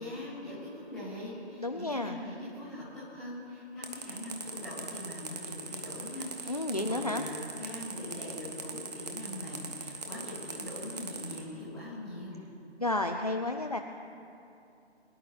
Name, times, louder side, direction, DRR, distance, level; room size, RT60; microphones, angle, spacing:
voice 1, 0.0-12.4, left 1 dB, ahead, -12 dB, 1.3 m, -42 dB
voice 2, 1.6-2.2 6.5-7.2 12.8-13.8, left 2 dB, 35° left, 4 dB, 0.4 m, -31 dB
sound 1, 3.8-11.4, right 4 dB, 35° right, 1.4 m, -40 dB
22.0 x 11.0 x 2.9 m, 2.6 s
figure-of-eight pair, 155°, 33 cm